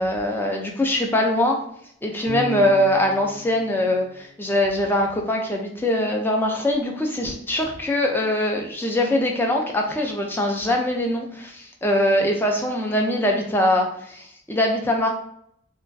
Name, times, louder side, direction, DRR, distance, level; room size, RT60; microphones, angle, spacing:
voice 1, 0.0-1.6 2.0-15.1, left 1 dB, 10° left, 1 dB, 0.3 m, -22 dB
Bass guitar, 2.3-5.3, left 2 dB, 50° right, 0.5 m, -37 dB
2.5 x 2.2 x 2.2 m, 0.68 s
head